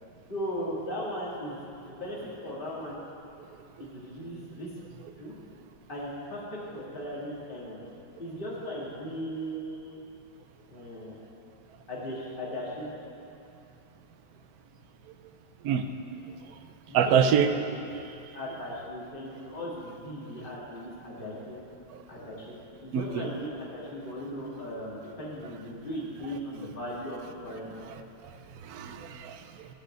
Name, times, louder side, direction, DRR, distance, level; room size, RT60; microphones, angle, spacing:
voice 1, 0.3-3.0 3.8-4.7 5.2-5.3 5.9-7.8 8.2-10.0 10.7-11.2 11.9-12.9 16.9-17.6 18.3-21.6 22.1-22.5 22.8-27.7, equal, 25° left, -6 dB, 2.2 m, -37 dB
voice 2, 16.9-17.5 22.9-23.2 28.6-29.7, right 8 dB, 65° right, 7 dB, 0.9 m, -25 dB
14.5 x 5.2 x 7.7 m, 2.7 s
omnidirectional pair, 2.2 m